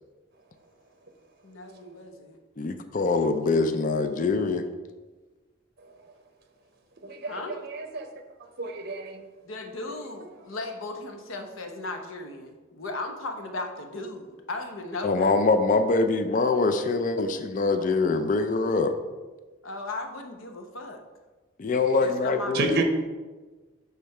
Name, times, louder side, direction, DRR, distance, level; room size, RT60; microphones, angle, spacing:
voice 1, 1.4-2.4 7.2-7.6 9.5-15.4 19.6-21.0 22.0-22.8, left 2 dB, 85° left, 5 dB, 0.8 m, -36 dB
voice 2, 2.6-4.6 15.0-18.9 21.6-22.8, left 3 dB, 40° left, 9 dB, 0.4 m, -24 dB
voice 3, 7.0-8.1 8.6-9.2 17.3-17.4 17.7-17.8 22.5-22.8, right 3 dB, 50° right, 6 dB, 0.7 m, -30 dB
6.5 x 3.3 x 5.3 m, 1.3 s
head